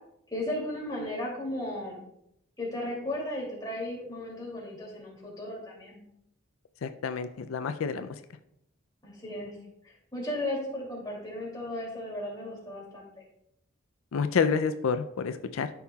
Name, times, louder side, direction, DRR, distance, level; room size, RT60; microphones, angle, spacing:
voice 1, 0.3-2.0 2.6-6.0 9.0-9.5 9.8-13.2, left 1 dB, 20° left, -4 dB, 2.5 m, -35 dB
voice 2, 6.8-8.2 14.1-15.7, left 5 dB, 90° left, 9 dB, 0.4 m, -29 dB
13.0 x 5.6 x 2.3 m, 0.77 s
head